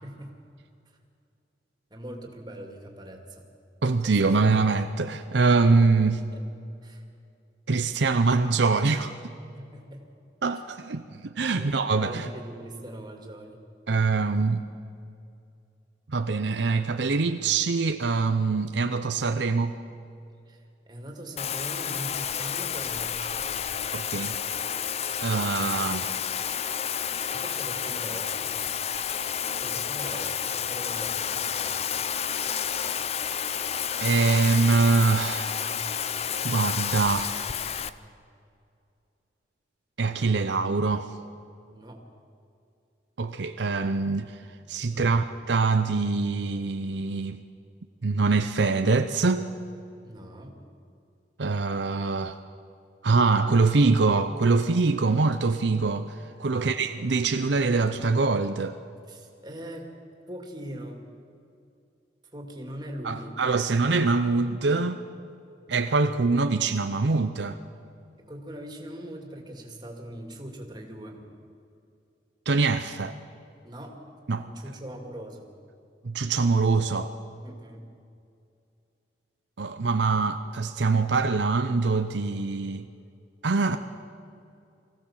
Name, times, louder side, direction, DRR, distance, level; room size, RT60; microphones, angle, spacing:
voice 1, 1.9-3.4 4.0-4.5 6.3-6.5 6.8-7.0 9.5-10.0 11.5-13.6 20.5-23.7 27.3-28.7 29.5-31.9 41.7-42.0 44.9-45.2 50.0-50.6 56.4-57.1 59.1-59.9 60.3-61.1 62.3-63.4 68.3-71.2 73.6-74.1 74.4-75.4 77.4-77.8, right 1 dB, 25° right, 2 dB, 2.4 m, -41 dB
voice 2, 3.8-6.2 7.7-9.2 10.4-12.3 13.9-14.7 16.1-19.8 23.9-24.4 25.2-26.1 32.5-32.6 34.0-35.6 36.4-37.3 40.0-41.1 43.2-44.4 44.7-47.4 48.0-49.5 51.4-52.4 53.0-56.1 56.4-58.8 63.0-65.0 65.7-67.6 72.5-73.2 74.3-74.5 76.0-77.1 79.6-82.9 83.4-83.8, right 4 dB, 70° right, 8 dB, 0.7 m, -24 dB
Bathtub (filling or washing), 21.4-37.9, left 8 dB, 35° left, 0.5 m, -30 dB
23.5 x 16.0 x 7.4 m, 2.5 s
head